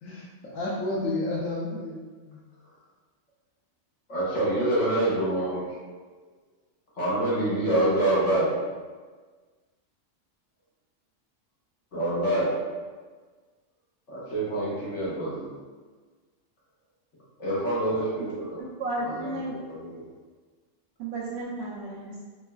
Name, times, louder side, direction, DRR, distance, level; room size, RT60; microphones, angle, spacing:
voice 1, 0.0-2.4, left 2 dB, 80° left, -6 dB, 1.0 m, -31 dB
voice 2, 4.1-5.8 6.9-8.5 11.9-12.5 14.1-15.5 17.4-18.6 19.0-20.1, right 1 dB, 65° left, -8 dB, 1.5 m, -26 dB
voice 3, 18.6-19.5 21.0-22.2, right 2 dB, 65° right, -5 dB, 0.8 m, -33 dB
3.5 x 3.1 x 2.2 m, 1.4 s
omnidirectional pair, 1.4 m